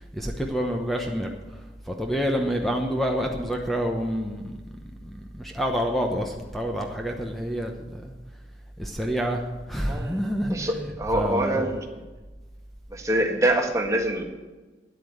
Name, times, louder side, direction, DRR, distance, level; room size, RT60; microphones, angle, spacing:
voice 1, 0.1-1.3 1.9-4.5 5.0-8.0 8.8-9.4 9.7-10.9 11.1-11.7, equal, ahead, 2 dB, 1.0 m, -27 dB
voice 2, 9.8-11.8 12.9-14.2, right 1 dB, 15° right, 2 dB, 1.6 m, -25 dB
9.9 x 8.5 x 8.6 m, 1.2 s
head